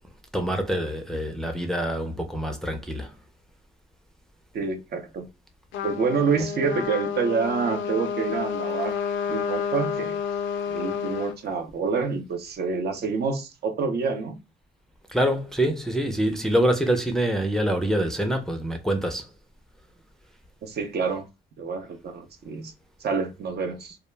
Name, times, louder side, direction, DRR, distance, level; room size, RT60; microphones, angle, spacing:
voice 1, 0.3-3.1 10.8-10.9 15.1-19.3, right 1 dB, ahead, 0.4 m, -25 dB
voice 2, 4.5-5.3 5.8-8.9 9.3-10.2 10.7-14.4 20.6-21.3 21.6-22.7 23.0-24.0, right 5 dB, 55° right, 0.5 m, -27 dB
Trumpet, 5.7-11.4, left 7 dB, 75° left, 0.4 m, -30 dB
2.3 x 2.0 x 3.2 m
cardioid pair, 90°, 20 cm